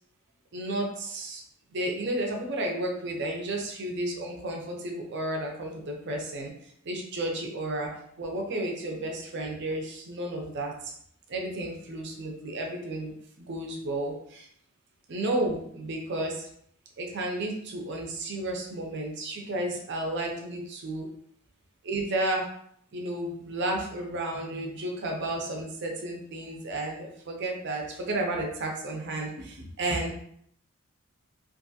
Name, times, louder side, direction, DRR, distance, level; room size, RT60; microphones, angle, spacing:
voice 1, 0.5-1.4 1.7-6.5 6.9-7.9 8.2-10.9 11.3-13.1 13.4-14.5 15.1-16.5 17.0-21.1 21.8-22.5 22.9-30.1, right 1 dB, 55° right, 1 dB, 0.5 m, -32 dB
2.5 x 2.3 x 2.7 m, 0.66 s
head